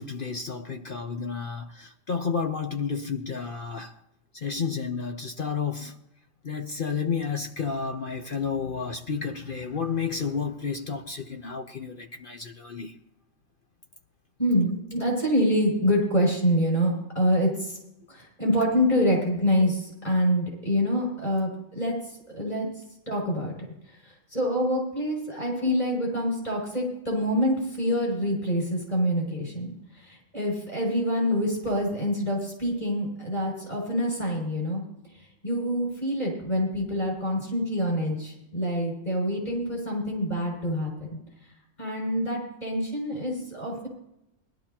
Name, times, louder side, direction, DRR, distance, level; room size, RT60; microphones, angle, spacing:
voice 1, 0.0-4.0 4.3-6.0 6.4-13.0, left 5 dB, 50° left, 0.9 m, -31 dB
voice 2, 14.4-17.8 18.1-23.5 23.9-34.8 35.1-41.2 41.8-43.9, equal, 30° left, 6.8 m, -26 dB
20.5 x 12.5 x 2.9 m
omnidirectional pair, 1.4 m